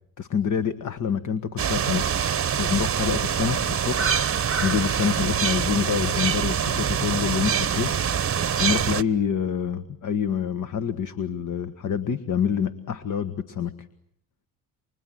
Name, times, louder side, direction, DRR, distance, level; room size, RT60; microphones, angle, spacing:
voice 1, 0.2-2.0 2.6-4.1 4.6-7.9 8.6-13.7, left 7 dB, 45° left, 10 dB, 1.6 m, -26 dB
sound 1, 1.6-9.0, right 8 dB, 30° right, 1.1 m, -25 dB
30.0 x 25.0 x 7.7 m, 0.69 s
hypercardioid pair, 65°, 44 cm